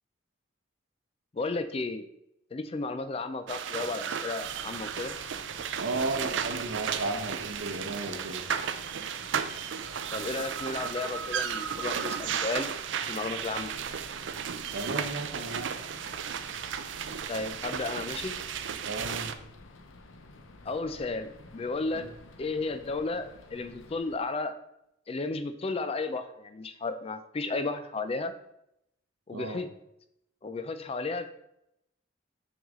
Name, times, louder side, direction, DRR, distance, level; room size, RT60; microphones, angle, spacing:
voice 1, 1.3-2.1 2.5-5.1 10.1-12.7 13.1-13.7 17.3-18.3 20.6-22.1 22.4-24.6 25.1-28.3 29.3-29.7 30.4-31.3, left 3 dB, 30° left, 10 dB, 0.4 m, -33 dB
sound 1, 3.5-19.3, right 7 dB, 65° right, 0.4 m, -34 dB
sound 2, 4.4-24.2, left 2 dB, 75° left, 0.7 m, -52 dB
voice 2, 5.7-8.4 14.7-15.7 18.8-19.3 21.9-22.1 29.3-29.6, right 2 dB, 85° right, 6 dB, 0.9 m, -34 dB
6.2 x 5.6 x 3.6 m, 0.81 s
head